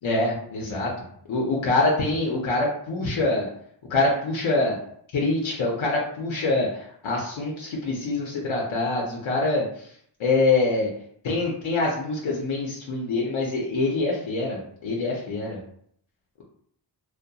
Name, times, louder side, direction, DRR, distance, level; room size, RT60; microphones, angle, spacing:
voice 1, 0.0-0.9 1.3-3.5 3.9-4.8 5.1-9.7 10.2-10.9 11.2-15.6, left 2 dB, 85° left, -3 dB, 0.6 m, -25 dB
2.6 x 2.1 x 2.2 m, 0.64 s
wide cardioid pair, 70°, 46 cm